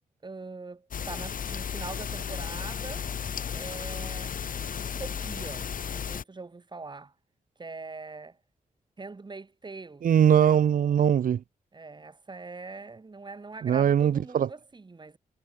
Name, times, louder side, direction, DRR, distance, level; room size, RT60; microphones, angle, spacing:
voice 1, 0.2-3.1 3.5-4.4 4.8-7.1 7.6-8.4 9.0-10.0 11.7-15.2, right 3 dB, 35° right, 4.8 m, -42 dB
sound 1, 0.9-6.2, left 7 dB, 90° left, 3.0 m, -34 dB
voice 2, 10.0-11.4 13.6-14.5, right 9 dB, 90° right, 0.6 m, -21 dB
wide cardioid pair, 125°, 14 cm